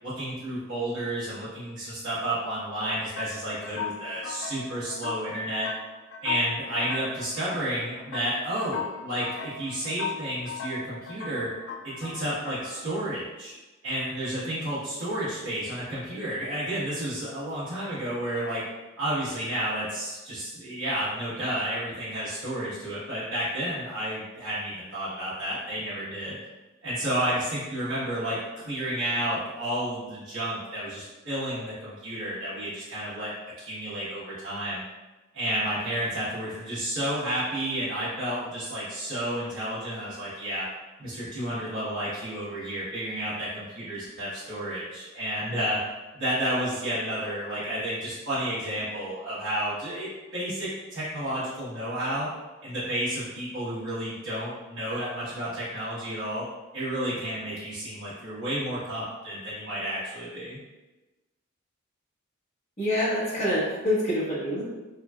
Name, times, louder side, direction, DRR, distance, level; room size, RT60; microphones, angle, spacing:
voice 1, 0.0-5.7 6.2-11.5 11.8-13.5 13.8-18.6 19.0-26.4 26.8-33.3 33.6-34.8 35.3-40.6 41.0-45.8 46.1-52.3 52.6-56.4 56.7-60.6, right 1 dB, 80° right, -12 dB, 1.1 m, -31 dB
sound 1, 3.2-13.1, left 5 dB, 60° left, 0.3 m, -38 dB
voice 2, 62.8-64.6, left 1 dB, 30° left, -10 dB, 1.2 m, -26 dB
3.8 x 2.3 x 2.3 m, 1.1 s
head